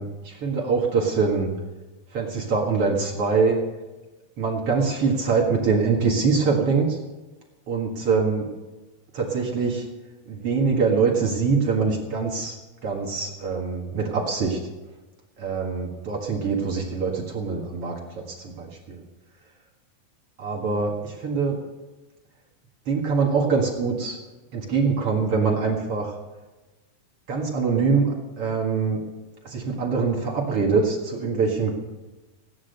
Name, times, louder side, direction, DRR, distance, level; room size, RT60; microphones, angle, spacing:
voice 1, 0.0-1.5 2.1-3.6 4.4-7.0 7.7-8.5 9.1-9.9 10.3-12.6 12.8-14.6 15.4-19.0 20.4-21.6 22.9-24.2 24.5-26.2 27.3-29.0 29.4-31.8, right 4 dB, 45° right, -1 dB, 2.1 m, -24 dB
17.5 x 9.8 x 6.7 m, 1.1 s
omnidirectional pair, 4.6 m